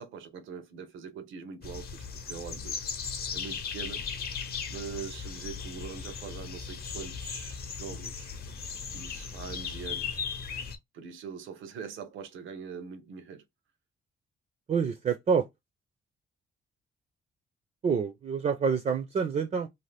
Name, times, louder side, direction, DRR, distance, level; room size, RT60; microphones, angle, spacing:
voice 1, 0.0-2.8 3.3-4.0 4.7-8.3 8.9-10.2 10.9-13.4, right 6 dB, 80° right, 0.7 m, -42 dB
sound 1, 1.6-10.8, left 6 dB, 50° left, 0.8 m, -37 dB
voice 2, 14.7-15.4 17.8-19.7, right 6 dB, 35° right, 0.5 m, -27 dB
2.6 x 2.4 x 3.3 m
cardioid pair, 90°, 20 cm